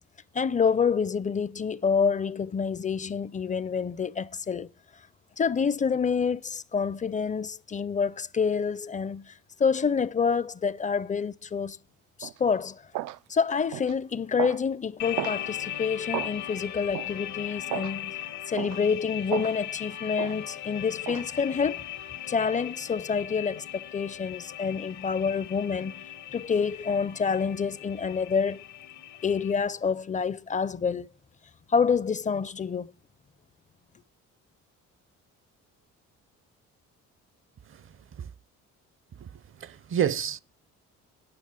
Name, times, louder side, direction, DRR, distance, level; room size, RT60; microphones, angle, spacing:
voice 1, 0.3-4.7 5.4-9.3 9.6-11.8 12.2-12.8 13.3-18.1 18.5-21.9 22.3-26.0 26.3-28.6 29.2-31.1 31.7-32.9, left 6 dB, 25° left, 0.5 m, -27 dB
sound 1, 12.2-12.4 12.9-13.2 13.7-13.9 14.4-14.6 15.2-15.4 16.1-16.3 16.9-17.1 17.7-17.9 18.6-18.8 19.3-19.6 20.2-20.4 21.1-21.3, right 15 dB, 90° right, 0.5 m, -33 dB
sound 2, 15.0-29.5, left 12 dB, 70° left, 0.9 m, -39 dB
voice 2, 39.2-40.4, right 9 dB, 45° right, 0.6 m, -30 dB
9.6 x 6.0 x 8.0 m
cardioid pair, 90°, 30 cm